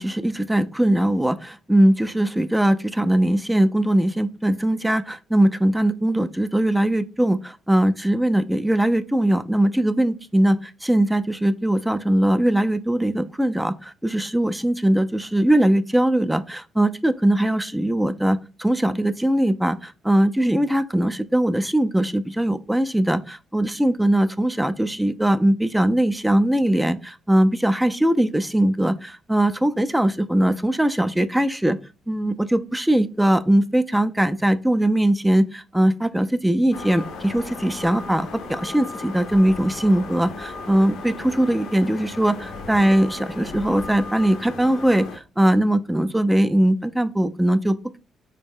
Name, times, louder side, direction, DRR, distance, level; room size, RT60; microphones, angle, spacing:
voice 1, 0.0-31.8 32.1-48.0, right 1 dB, 5° right, 11 dB, 0.3 m, -20 dB
sound 1, 36.7-45.2, left 3 dB, 85° left, 0.5 m, -36 dB
3.7 x 2.1 x 3.5 m, 0.32 s
cardioid pair, 90°, 0 cm